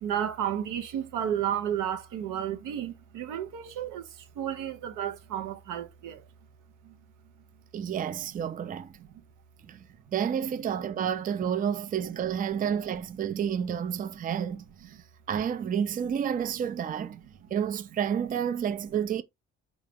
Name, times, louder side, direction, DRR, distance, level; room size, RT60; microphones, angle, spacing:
voice 1, 0.0-6.2 6.8-7.0 9.0-9.2 13.3-13.4 14.9-15.0, right 10 dB, 90° right, 0.6 m, -32 dB
voice 2, 7.7-8.9 9.7-15.0 15.3-17.2 17.5-19.2, right 8 dB, 30° right, 0.3 m, -30 dB
3.8 x 2.4 x 3.4 m
cardioid pair, 90°, 30 cm